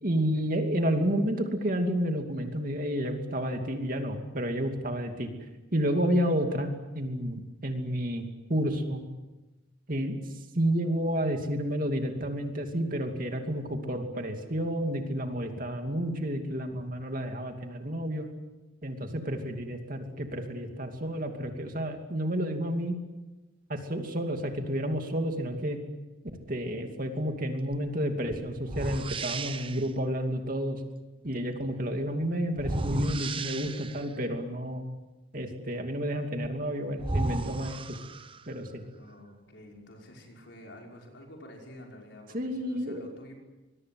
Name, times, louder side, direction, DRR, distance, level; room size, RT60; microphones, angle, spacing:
voice 1, 0.0-5.3 5.7-9.1 9.9-10.2 10.5-18.3 18.8-23.0 23.7-25.8 26.5-30.8 31.2-34.8 35.3-38.0 38.5-38.8 42.3-43.1, equal, 45° right, 4 dB, 2.7 m, -30 dB
sound 1, 27.7-27.9 28.7-29.9 32.6-34.2 36.4-36.5 37.0-38.6, right 2 dB, 25° right, 0.8 m, -34 dB
voice 2, 38.9-43.3, left 1 dB, 60° left, 0 dB, 5.6 m, -49 dB
25.0 x 22.5 x 7.8 m, 1.1 s
head